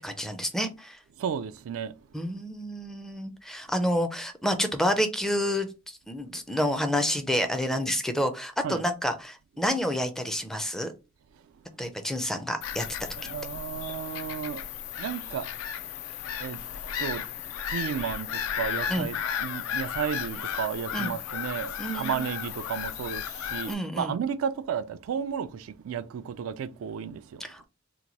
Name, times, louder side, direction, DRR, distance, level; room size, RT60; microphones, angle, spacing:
voice 1, 0.0-1.0 2.1-10.9 11.8-12.8 18.9-19.1 20.9-21.1 21.8-22.3 23.7-24.2 27.4-27.6, equal, ahead, 0.4 m, -29 dB
voice 2, 1.2-2.0 8.6-8.8 13.2-14.6 15.0-15.5 16.4-16.6 17.0-27.5, right 7 dB, 75° right, 0.3 m, -33 dB
Bird vocalization bird call bird song / Gull seagull, 12.6-23.7, left 9 dB, 80° left, 0.4 m, -34 dB
2.9 x 2.2 x 3.9 m
head